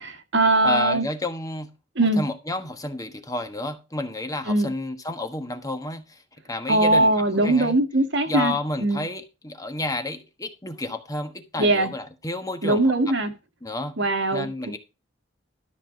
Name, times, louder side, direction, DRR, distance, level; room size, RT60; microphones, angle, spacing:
voice 1, 0.0-1.0 2.0-2.2 4.5-4.7 6.7-8.5 8.8-9.0 11.6-11.9 12.6-13.3 14.0-14.5, right 2 dB, 65° right, 1.9 m, -21 dB
voice 2, 0.6-1.7 2.0-6.0 6.5-7.1 7.4-7.8 8.3-12.8 13.6-14.0 14.3-14.8, left 2 dB, 20° left, 1.3 m, -30 dB
13.0 x 5.8 x 4.5 m
head